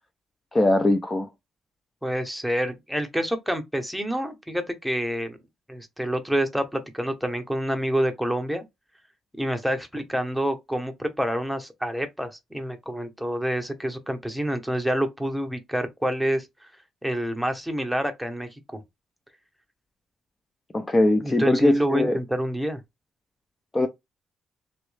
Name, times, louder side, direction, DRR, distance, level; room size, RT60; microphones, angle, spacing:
voice 1, 0.5-1.3 20.7-22.2 23.7-23.9, left 1 dB, 25° left, 0.6 m, -21 dB
voice 2, 2.0-5.4 5.7-8.6 9.4-16.5 17.0-18.8 21.2-22.8, equal, ahead, 1.0 m, -27 dB
3.1 x 2.9 x 3.3 m
cardioid pair, 90°, 0 cm